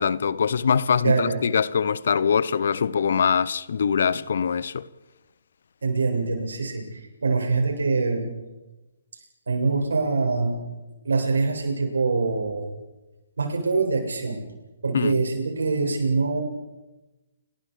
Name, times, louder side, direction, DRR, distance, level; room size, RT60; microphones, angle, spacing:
voice 1, 0.0-4.9 14.9-15.2, left 6 dB, 65° left, 1.0 m, -23 dB
voice 2, 1.0-1.4 5.8-8.3 9.5-10.6 11.0-12.7 13.4-14.4 14.8-16.4, right 4 dB, 80° right, 8.0 m, -24 dB
29.5 x 22.0 x 5.2 m
hypercardioid pair, 140°, 0 cm